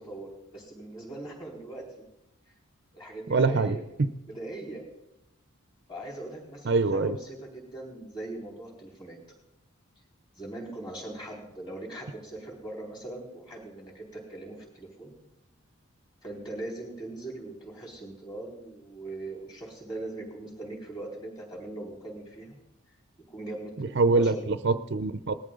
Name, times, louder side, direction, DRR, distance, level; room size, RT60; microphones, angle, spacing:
voice 1, 0.0-1.9 2.9-3.8 4.3-4.8 5.9-9.2 10.3-15.1 16.2-22.6 23.3-24.6, right 2 dB, 20° left, -1 dB, 4.1 m, -40 dB
voice 2, 3.3-4.1 6.6-7.2 23.8-25.3, right 3 dB, 55° right, 11 dB, 0.6 m, -24 dB
19.0 x 13.5 x 3.8 m, 0.86 s
head